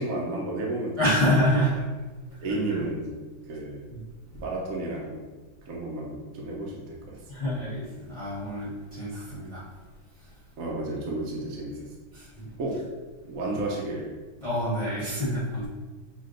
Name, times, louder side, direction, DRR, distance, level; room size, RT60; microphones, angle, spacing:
voice 1, 0.0-1.0 2.4-3.2 3.5-3.8 4.3-5.2 5.7-7.2 10.6-11.9 12.6-12.9 13.2-14.1, right 2 dB, 65° right, -3 dB, 0.9 m, -32 dB
voice 2, 1.0-1.8 2.7-2.8 3.9-4.0 7.3-9.6 12.1-12.5 14.4-15.7, equal, 40° left, -9 dB, 0.4 m, -27 dB
6.0 x 3.3 x 2.5 m, 1.3 s
omnidirectional pair, 2.2 m